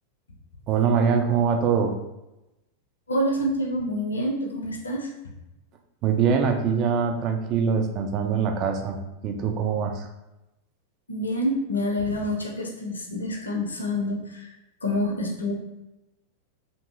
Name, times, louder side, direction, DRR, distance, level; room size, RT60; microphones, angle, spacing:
voice 1, 0.7-2.0 6.0-9.0 9.2-10.1, right 6 dB, 35° right, 4 dB, 0.3 m, -23 dB
voice 2, 3.1-5.1 11.1-14.5 14.8-15.5, left 1 dB, 75° left, 0 dB, 0.4 m, -27 dB
2.6 x 2.5 x 2.5 m, 0.96 s
figure-of-eight pair, 90°, 0 cm